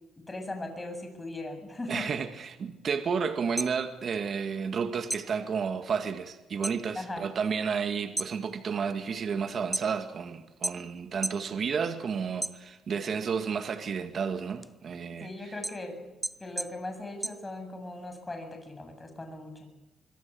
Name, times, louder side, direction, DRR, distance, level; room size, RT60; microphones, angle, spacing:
voice 1, 0.3-2.1 6.9-7.3 15.2-16.1 16.4-19.7, left 2 dB, 20° left, 6 dB, 7.8 m, -39 dB
voice 2, 1.9-15.3, right 6 dB, 50° right, 7 dB, 2.1 m, -31 dB
sound 1, 3.5-4.8 5.1-6.8 7.2-7.6 8.0-10.2 10.6-11.5 11.9-13.1 13.5-18.0, right 1 dB, 10° right, 0.8 m, -36 dB
25.5 x 22.5 x 8.6 m, 1.0 s
cardioid pair, 90°, 0 cm